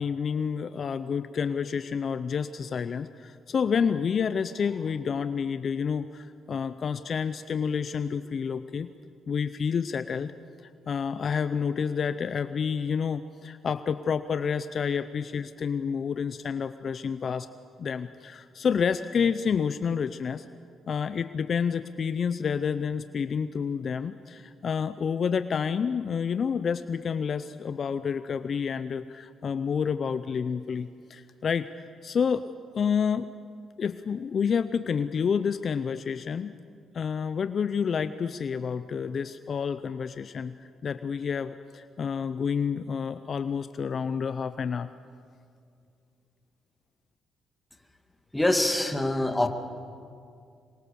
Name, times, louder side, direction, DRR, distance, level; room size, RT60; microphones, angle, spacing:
voice 1, 0.0-8.9 9.3-10.3 10.9-17.5 17.8-20.4 20.9-33.3 33.8-36.6 36.9-44.9, left 6 dB, 50° left, 12 dB, 0.7 m, -29 dB
voice 2, 48.3-49.5, left 1 dB, 10° left, 6 dB, 2.1 m, -24 dB
26.0 x 22.5 x 7.0 m, 2.4 s
cardioid pair, 90°, 0 cm